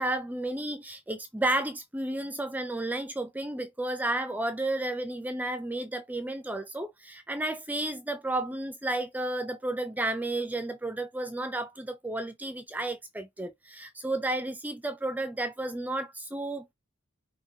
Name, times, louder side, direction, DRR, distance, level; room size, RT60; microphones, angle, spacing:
voice 1, 0.0-16.7, right 1 dB, 10° right, 0.5 m, -32 dB
5.9 x 3.0 x 2.8 m
head